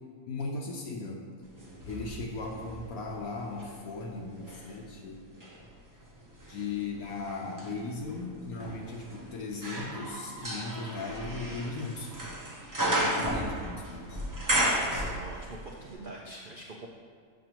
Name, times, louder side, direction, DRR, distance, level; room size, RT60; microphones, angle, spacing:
voice 1, 0.3-1.3 1.9-5.2 6.5-12.1 13.0-14.2, left 3 dB, 75° left, -1 dB, 1.1 m, -37 dB
sound 1, 1.5-3.7 4.3-15.6 15.9-16.0, right 1 dB, 20° right, 0.5 m, -34 dB
voice 2, 14.8-16.9, right 2 dB, 70° right, -1 dB, 0.4 m, -45 dB
7.4 x 6.2 x 2.9 m, 2.2 s
omnidirectional pair, 1.6 m